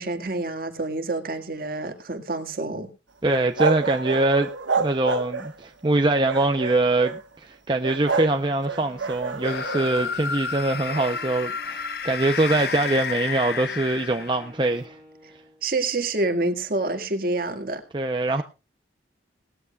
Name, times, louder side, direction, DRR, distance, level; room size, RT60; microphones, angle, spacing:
voice 1, 0.0-2.9 15.6-17.8, right 2 dB, 50° right, 1.9 m, -27 dB
voice 2, 3.2-4.5 4.8-15.0 17.9-18.4, right 2 dB, 25° right, 0.6 m, -23 dB
sound 1, 3.3-5.6 6.2-7.2 7.8-8.4 8.7-10.1 10.9-11.2, right 4 dB, 90° right, 1.3 m, -28 dB
Wind instrument woodwind instrument, 7.8-15.7, left 1 dB, 15° left, 5.0 m, -50 dB
sound 2, 9.4-14.6, left 6 dB, 55° left, 0.7 m, -31 dB
19.0 x 14.0 x 2.3 m
head